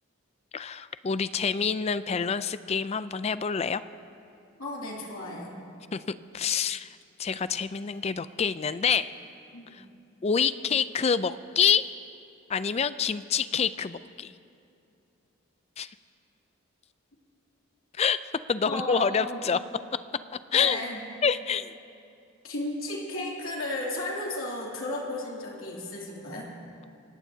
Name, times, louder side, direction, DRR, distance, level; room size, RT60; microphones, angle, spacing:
voice 1, 0.5-3.8 5.9-6.0 6.3-9.1 9.7-9.8 10.2-11.9 12.5-14.3 15.8-15.9 18.0-18.2 18.5-19.6 20.5-20.8 21.2-21.7, left 6 dB, 30° left, 14 dB, 0.3 m, -27 dB
voice 2, 4.6-5.5 9.5-9.8 18.7-19.4 20.5-21.0 22.4-26.5, left 1 dB, 70° left, -3 dB, 2.9 m, -34 dB
27.5 x 17.5 x 2.8 m, 2.6 s
head